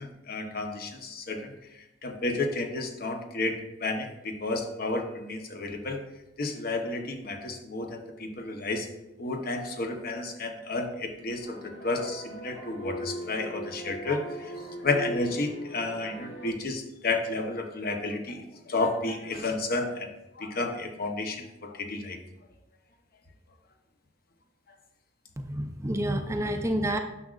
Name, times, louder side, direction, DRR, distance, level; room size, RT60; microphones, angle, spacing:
voice 1, 0.0-1.5 2.0-6.0 6.4-8.9 9.2-14.5 14.8-20.1 20.4-22.2, left 2 dB, 55° left, 4 dB, 0.9 m, -31 dB
sound 1, 11.4-16.5, equal, 80° left, 1.9 m, -39 dB
voice 2, 25.4-27.0, right 1 dB, 15° right, 6 dB, 0.4 m, -29 dB
9.8 x 6.2 x 2.4 m, 0.92 s
head